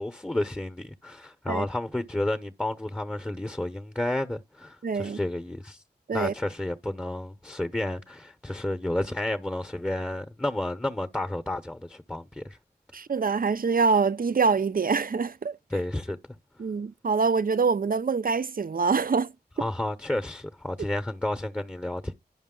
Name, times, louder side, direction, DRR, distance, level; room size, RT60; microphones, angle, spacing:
voice 1, 0.0-5.8 6.1-12.6 15.7-16.2 19.6-22.1, left 1 dB, 10° left, 0.8 m, -31 dB
voice 2, 4.8-5.2 6.1-6.3 12.9-15.6 16.6-19.3, right 5 dB, 55° right, 0.6 m, -25 dB
11.0 x 5.1 x 3.8 m
cardioid pair, 50°, 17 cm